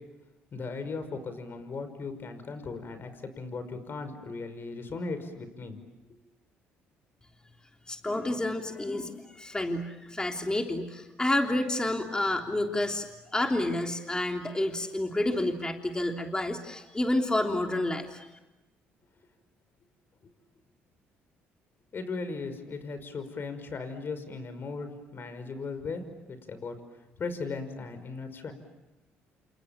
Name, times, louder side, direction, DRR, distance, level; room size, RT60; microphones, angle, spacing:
voice 1, 0.5-5.8 21.9-26.0 26.3-26.8 27.2-28.5, left 4 dB, 45° left, 10 dB, 5.6 m, -37 dB
voice 2, 7.9-13.1 13.3-18.3, left 1 dB, 15° left, 3 dB, 3.4 m, -29 dB
29.0 x 27.5 x 7.3 m, 1.0 s
supercardioid pair, 65°, 5 cm